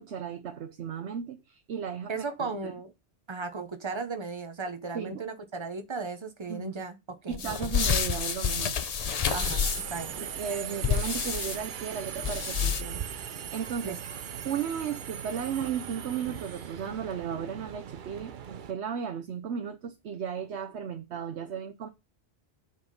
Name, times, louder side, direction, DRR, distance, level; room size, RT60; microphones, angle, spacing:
voice 1, 0.0-2.7 4.9-5.2 6.5-6.7 7.3-8.8 10.2-14.0 14.4-21.9, right 7 dB, 90° right, 1.1 m, -35 dB
voice 2, 2.1-2.9 3.3-7.7 9.3-10.2 13.8-14.0, right 4 dB, 30° right, 0.9 m, -36 dB
sound 1, 7.3-10.0 10.8-11.6 12.2-13.0, left 7 dB, 45° left, 0.6 m, -28 dB
Subway metro underground, 9.3-18.7, right 8 dB, 55° right, 0.7 m, -39 dB
7.8 x 4.2 x 5.5 m
omnidirectional pair, 1.1 m